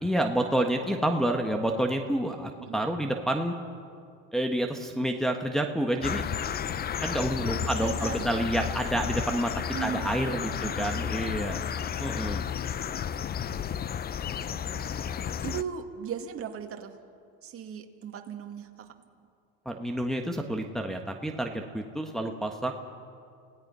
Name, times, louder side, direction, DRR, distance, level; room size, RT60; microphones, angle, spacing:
voice 1, 0.0-3.5 4.3-6.2 7.0-9.5 9.8-11.6 12.0-12.5 19.6-22.7, right 1 dB, ahead, 2 dB, 1.4 m, -29 dB
sound 1, 6.0-15.6, left 8 dB, 30° left, 0.6 m, -32 dB
voice 2, 7.6-8.3 9.7-10.2 10.6-11.0 14.0-14.1 14.5-17.0 17.4-18.9, right 8 dB, 40° right, 4 dB, 2.1 m, -38 dB
29.5 x 17.5 x 5.6 m, 2.3 s
supercardioid pair, 100°, 33 cm